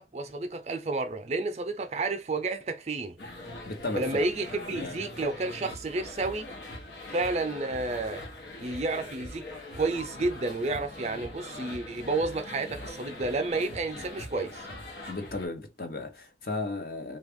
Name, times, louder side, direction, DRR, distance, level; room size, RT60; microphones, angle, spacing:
voice 1, 0.0-3.2 4.0-6.5 7.1-8.2 8.6-9.4 9.8-14.7, right 3 dB, 40° right, 0.5 m, -31 dB
sound 1, 3.2-15.5, left 1 dB, 85° left, 1.0 m, -42 dB
voice 2, 3.6-4.3 4.7-5.0 15.1-17.2, left 2 dB, 55° left, 0.7 m, -35 dB
3.3 x 2.4 x 3.5 m
head